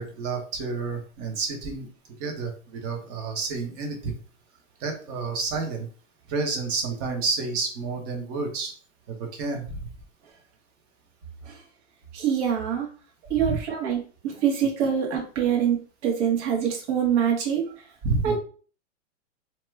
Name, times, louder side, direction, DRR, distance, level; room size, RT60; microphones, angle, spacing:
voice 1, 0.0-1.9 2.2-4.2 4.8-5.9 6.3-8.7 9.1-9.6 13.4-13.6 18.0-18.4, right 4 dB, 35° right, 2 dB, 1.0 m, -29 dB
voice 2, 12.1-12.9 13.3-15.8 16.0-17.6 18.2-18.4, right 8 dB, 60° right, 0 dB, 1.4 m, -24 dB
2.9 x 2.2 x 3.3 m, 0.40 s
hypercardioid pair, 130°, 39 cm